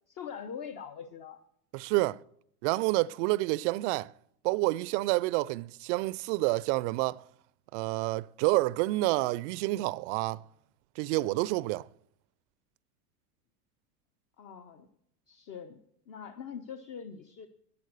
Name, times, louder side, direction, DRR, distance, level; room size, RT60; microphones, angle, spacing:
voice 1, 0.1-1.4 14.4-14.9 15.3-15.8 16.1-17.5, left 7 dB, 45° left, 1.0 m, -43 dB
voice 2, 1.7-2.2 2.6-4.1 4.4-7.2 7.7-10.4 11.0-11.9, right 20 dB, 50° right, 0.4 m, -28 dB
11.0 x 9.8 x 6.5 m
hypercardioid pair, 100°, 46 cm